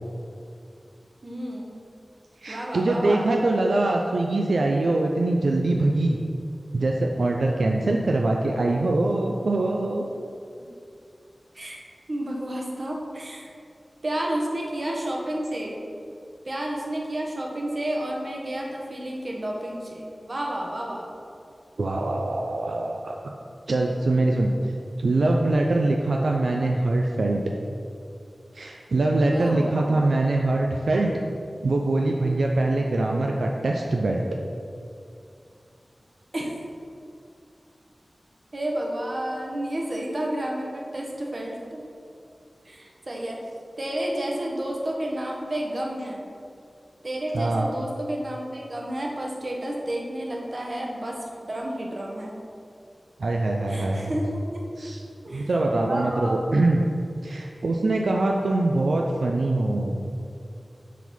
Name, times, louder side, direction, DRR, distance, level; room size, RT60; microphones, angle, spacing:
voice 1, 1.2-1.7 2.5-3.3 11.5-11.8 12.1-13.5 14.0-15.7 16.4-21.1 29.3-30.0 36.3-36.6 38.5-41.8 42.6-43.4 43.8-46.2 47.0-52.4 53.7-54.6 55.2-55.5 55.8-56.4, right 1 dB, 50° right, -1 dB, 1.3 m, -31 dB
voice 2, 2.4-6.2 6.7-10.0 21.8-23.1 23.7-24.5 25.0-27.4 28.5-31.1 31.6-34.2 47.3-47.7 53.2-54.2 54.8-55.0 55.3-56.8 57.2-60.1, right 2 dB, 90° right, 0 dB, 0.5 m, -23 dB
7.4 x 4.0 x 5.4 m, 2.4 s
wide cardioid pair, 75°, 0 cm